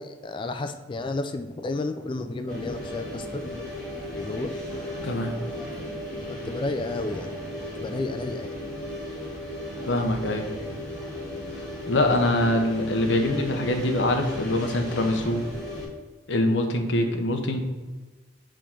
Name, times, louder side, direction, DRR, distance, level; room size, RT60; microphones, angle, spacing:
voice 1, 0.0-3.7 4.2-4.6 6.3-7.4 7.7-8.6, left 2 dB, 25° left, 7 dB, 0.3 m, -32 dB
sound 1, 2.5-15.9, left 1 dB, 5° left, 1.7 m, -35 dB
voice 2, 5.0-5.3 9.9-10.5 11.9-15.4 16.3-17.6, left 1 dB, 70° left, 5 dB, 0.8 m, -24 dB
5.0 x 3.7 x 5.7 m, 1.3 s
head